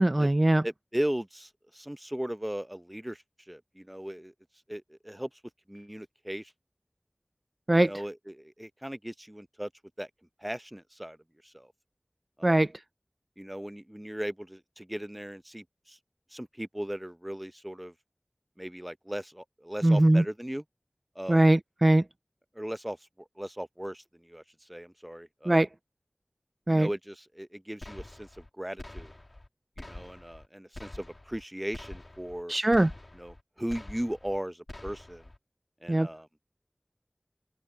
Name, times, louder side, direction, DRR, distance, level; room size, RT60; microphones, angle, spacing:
voice 1, 0.0-0.6 7.7-7.9 12.4-12.7 19.8-20.2 21.3-22.0 25.5-25.7 26.7-26.9 32.5-32.9 35.9-36.1, right 1 dB, 45° right, 0.4 m, -21 dB
voice 2, 0.6-4.3 4.7-5.3 5.7-6.5 7.8-9.7 10.0-10.1 10.4-11.2 11.4-11.7 12.4-12.6 13.4-16.0 16.3-17.9 18.6-20.6 21.2-21.4 22.5-23.0 23.4-24.4 24.7-25.6 26.7-29.1 29.9-32.5 33.1-35.2 35.8-36.3, equal, 15° right, 0.7 m, -37 dB
sound 1, 27.8-28.5 28.8-29.5 29.8-30.5 30.7-31.4 31.7-32.4 32.7-33.4 33.7-34.4 34.7-35.4, left 1 dB, 60° left, 1.8 m, -46 dB
open air
wide cardioid pair, 40°, 0 cm